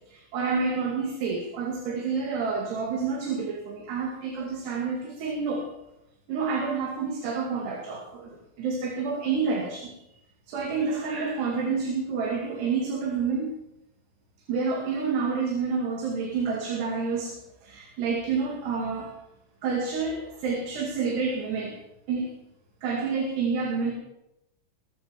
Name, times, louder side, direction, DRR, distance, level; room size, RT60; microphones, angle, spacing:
voice 1, 0.1-5.7 6.3-9.9 10.5-13.5 14.5-19.1 19.6-21.8 22.1-22.3 22.8-23.9, right 5 dB, 75° right, 0 dB, 4.4 m, -29 dB
22.5 x 8.3 x 7.5 m, 0.85 s
omnidirectional pair, 4.9 m